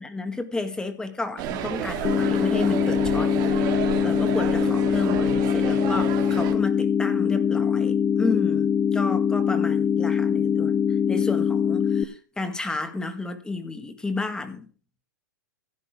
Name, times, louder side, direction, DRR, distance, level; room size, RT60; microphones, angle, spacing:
voice 1, 0.0-14.7, left 3 dB, 5° left, 1.9 m, -32 dB
sound 1, 1.4-6.5, right 9 dB, 40° right, 3.5 m, -31 dB
sound 2, 2.0-12.0, left 8 dB, 25° left, 1.1 m, -23 dB
16.0 x 9.6 x 3.7 m
hypercardioid pair, 130°, 10 cm